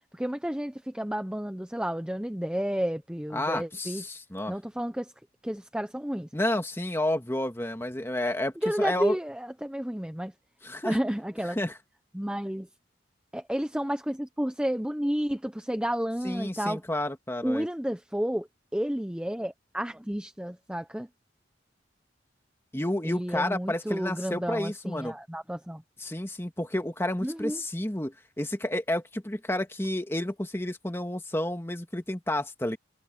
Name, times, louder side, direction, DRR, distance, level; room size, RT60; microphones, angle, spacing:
voice 1, 0.1-4.0 4.5-5.1 5.4-6.3 8.6-10.3 10.8-11.6 12.1-12.7 13.3-16.8 17.4-18.5 18.7-21.1 23.0-25.8 27.2-27.6, equal, 5° right, 0.6 m, -31 dB
voice 2, 3.3-4.5 6.3-9.2 10.6-11.0 11.5-11.7 16.2-17.7 22.7-25.1 26.0-32.8, left 1 dB, 15° left, 1.6 m, -30 dB
head